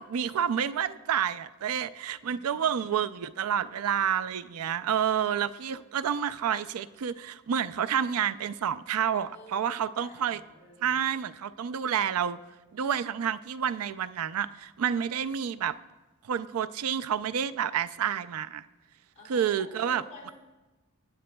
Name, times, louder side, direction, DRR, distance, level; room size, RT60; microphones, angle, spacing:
voice 1, 0.0-10.4 10.8-12.4 12.7-15.8 16.3-18.7 19.3-20.0, right 8 dB, 85° right, 13 dB, 0.4 m, -29 dB
voice 2, 2.2-3.3 9.1-11.1 19.1-20.3, left 1 dB, 35° left, -6 dB, 4.2 m, -52 dB
19.5 x 9.3 x 2.2 m, 1.1 s
head